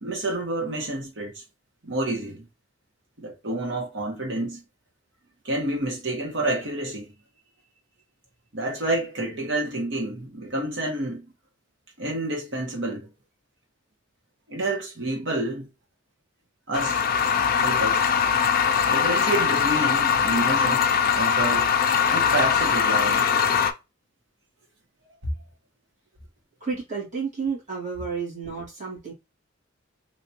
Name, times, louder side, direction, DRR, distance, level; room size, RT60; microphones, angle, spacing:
voice 1, 0.0-1.4 1.8-2.5 3.2-4.6 5.4-7.1 8.5-11.3 12.0-13.1 14.5-15.7 16.7-17.0 17.6-18.0 18.9-21.7 22.1-23.4 25.2-25.3, right 1 dB, 65° right, 1.3 m, -29 dB
sound 1, 16.7-23.7, left 7 dB, 50° left, 0.4 m, -21 dB
voice 2, 26.6-29.1, right 5 dB, 40° right, 1.9 m, -31 dB
3.3 x 2.9 x 2.8 m
head